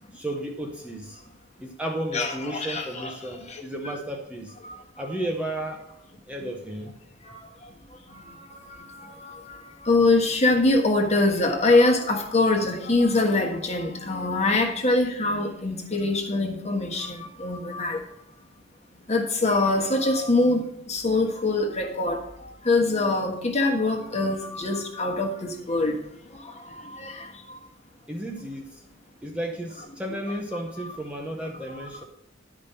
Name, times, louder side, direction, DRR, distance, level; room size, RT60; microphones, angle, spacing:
voice 1, 0.1-1.2 1.6-4.5 5.0-5.8 6.3-6.9 28.1-28.8 29.2-32.0, right 1 dB, 5° right, 1 dB, 0.8 m, -33 dB
voice 2, 2.1-3.1 3.5-3.6 4.6-4.8 7.2-7.5 8.1-18.0 19.1-26.0 26.3-27.6, left 2 dB, 30° left, 2 dB, 1.3 m, -24 dB
11.0 x 5.2 x 5.5 m, 0.79 s
head